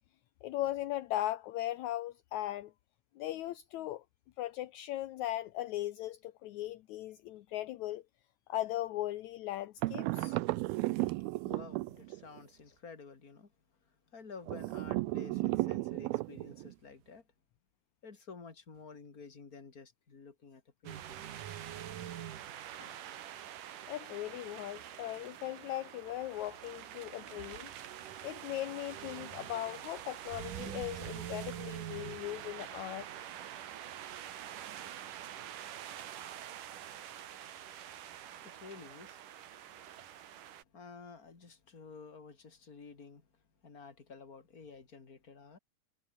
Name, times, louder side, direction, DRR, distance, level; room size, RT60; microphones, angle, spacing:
voice 1, 0.4-2.7 3.2-4.0 4.4-8.0 8.5-10.4 22.8-23.0 23.9-27.7 28.2-33.1, left 14 dB, 75° left, 1.8 m, -38 dB
sound 1, 9.8-12.4 14.5-16.7, right 20 dB, 85° right, 2.5 m, -34 dB
voice 2, 10.5-13.5 13.8-17.2 18.0-21.3 36.6-36.8 37.1-39.8 40.1-45.6, left 5 dB, 25° left, 3.2 m, -52 dB
sound 2, 20.9-40.6, right 11 dB, 65° right, 3.0 m, -45 dB
omnidirectional pair, 4.3 m